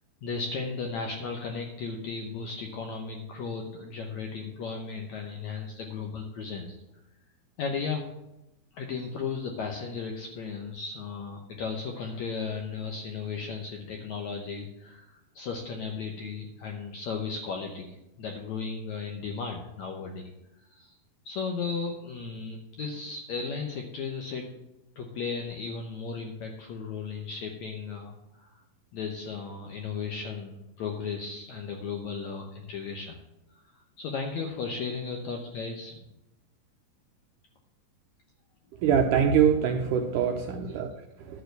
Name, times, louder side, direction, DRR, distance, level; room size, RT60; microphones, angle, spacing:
voice 1, 0.2-6.8 7.6-8.1 8.7-20.3 20.7-21.0 21.3-24.5 25.0-28.5 28.9-33.2 34.0-36.0, left 5 dB, 75° left, 2 dB, 1.7 m, -35 dB
voice 2, 38.8-40.9, right 7 dB, 75° right, 3 dB, 1.9 m, -23 dB
11.5 x 4.8 x 7.8 m, 0.91 s
omnidirectional pair, 4.4 m